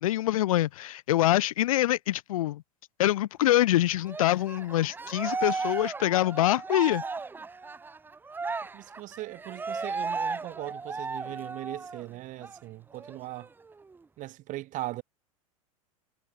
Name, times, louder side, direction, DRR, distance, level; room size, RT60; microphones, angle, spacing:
voice 1, 0.0-2.6 3.0-7.0, left 14 dB, 70° left, 1.1 m, -25 dB
Cheering, 4.1-12.0 12.4-12.6 13.0-14.0, right 4 dB, 10° right, 0.6 m, -35 dB
voice 2, 8.7-13.5 14.2-15.0, right 17 dB, 45° right, 2.6 m, -39 dB
hypercardioid pair, 90°, 18 cm